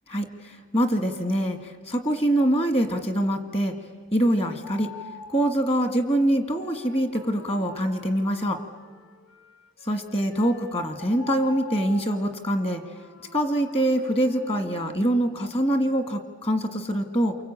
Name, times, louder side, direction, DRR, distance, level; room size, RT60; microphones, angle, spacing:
voice 1, 0.1-3.7 4.1-4.9 5.3-8.6 9.8-12.8 13.3-17.4, right 1 dB, 25° left, 7 dB, 1.8 m, -24 dB
sound 1, 4.6-5.5 10.1-10.3 11.0-12.2, left 4 dB, 45° left, 1.9 m, -41 dB
Wind instrument woodwind instrument, 6.6-15.0, left 1 dB, 75° left, 5.1 m, -50 dB
28.5 x 23.5 x 8.8 m, 1.5 s
head